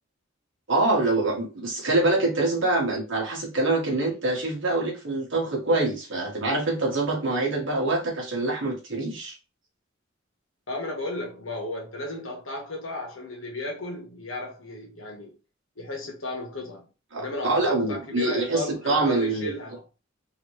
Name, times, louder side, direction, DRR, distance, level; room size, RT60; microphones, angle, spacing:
voice 1, 0.7-9.3 17.1-19.5, right 2 dB, 65° right, 1.6 m, -25 dB
voice 2, 10.7-15.3 15.8-16.9 17.2-19.8, left 2 dB, 85° left, 1.5 m, -34 dB
4.0 x 3.0 x 3.2 m
head